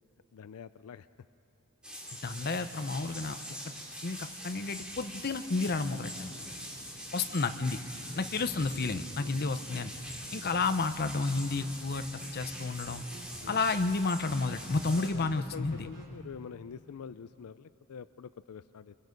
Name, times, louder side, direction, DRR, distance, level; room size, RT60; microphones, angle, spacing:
voice 1, 0.3-1.1 6.3-6.7 9.2-9.4 13.4-13.6 14.9-19.0, left 6 dB, 80° left, 14 dB, 0.4 m, -46 dB
sound 1, 1.8-15.1, equal, 5° right, 2.6 m, -44 dB
voice 2, 2.2-3.4 4.0-6.3 7.1-7.8 8.2-9.9 10.3-12.1 12.3-13.0 13.5-15.9, left 3 dB, 45° left, 10 dB, 0.7 m, -31 dB
sound 2, 9.9-16.0, right 1 dB, 55° right, 4.0 m, -51 dB
28.5 x 22.5 x 5.3 m, 2.8 s
head